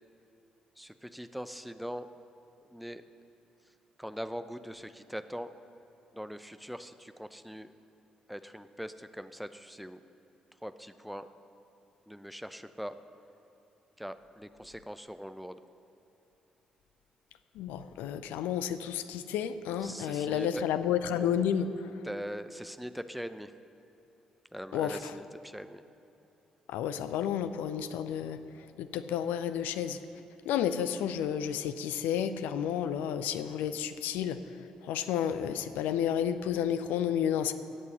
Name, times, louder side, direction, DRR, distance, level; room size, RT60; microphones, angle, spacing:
voice 1, 0.8-2.1 2.7-3.1 4.0-5.5 6.1-7.7 8.3-10.0 10.6-11.3 12.1-12.9 14.0-15.6 19.8-20.6 22.0-23.5 24.5-25.8, equal, ahead, 11 dB, 0.7 m, -41 dB
voice 2, 17.5-21.7 24.7-25.1 26.7-28.4 28.8-30.0 30.4-34.4 34.8-37.5, left 9 dB, 65° left, 12 dB, 0.6 m, -31 dB
16.5 x 8.3 x 6.6 m, 2.8 s
figure-of-eight pair, 40°, 3 cm